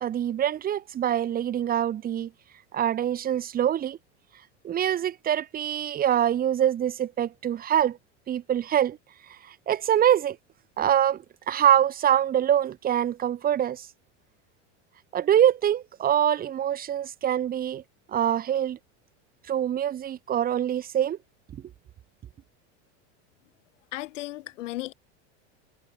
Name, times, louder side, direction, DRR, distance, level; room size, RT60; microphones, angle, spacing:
voice 1, 0.0-2.3 2.7-4.0 4.6-8.0 8.3-9.0 9.3-10.4 10.8-13.9 15.1-17.8 18.1-18.8 19.5-21.2 21.5-21.6, right 10 dB, 25° right, 0.8 m, -24 dB
voice 2, 23.9-24.9, left 16 dB, 90° left, 2.3 m, -35 dB
supercardioid pair, 125°, 36 cm